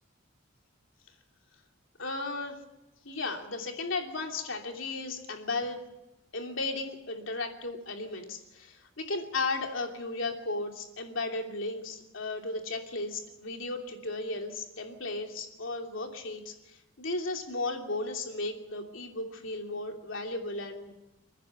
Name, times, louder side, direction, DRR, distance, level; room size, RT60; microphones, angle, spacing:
voice 1, 2.0-2.5 3.0-5.8 6.3-20.9, left 3 dB, 75° left, 2 dB, 3.0 m, -35 dB
29.0 x 9.9 x 9.3 m, 0.96 s
head